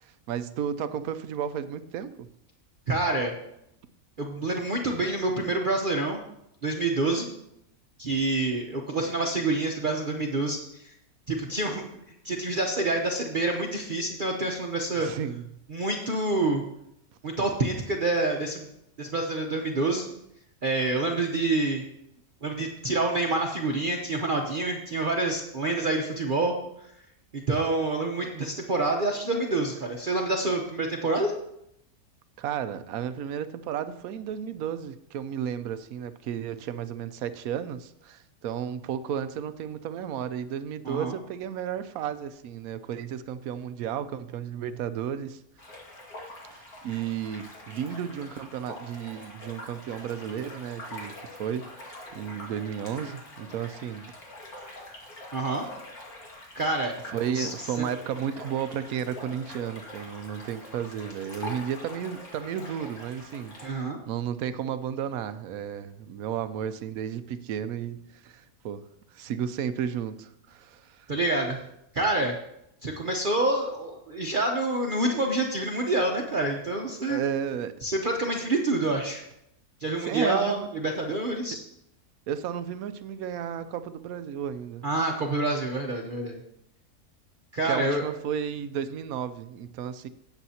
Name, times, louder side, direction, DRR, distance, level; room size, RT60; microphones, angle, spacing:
voice 1, 0.0-2.3 15.0-15.5 32.4-45.4 46.5-54.1 54.6-54.8 57.1-68.8 69.1-71.1 77.0-77.7 80.0-80.7 82.3-84.9 87.6-90.1, right 8 dB, 80° right, 12 dB, 1.0 m, -33 dB
voice 2, 2.9-3.3 4.2-6.2 6.6-7.3 8.0-10.9 11.3-11.9 12.2-15.1 15.7-16.6 17.2-18.7 19.0-20.1 20.6-21.8 22.4-26.6 27.3-31.3 40.8-41.2 55.3-55.6 56.5-56.9 57.3-57.5 63.6-64.0 71.1-71.6 71.9-72.3 72.8-77.2 77.8-79.2 79.8-81.6 84.8-86.4 87.5-88.0, right 2 dB, 40° right, 1 dB, 0.9 m, -27 dB
sound 1, 45.6-63.7, left 1 dB, 90° left, 2.5 m, -44 dB
17.0 x 7.1 x 2.8 m, 0.79 s
omnidirectional pair, 1.5 m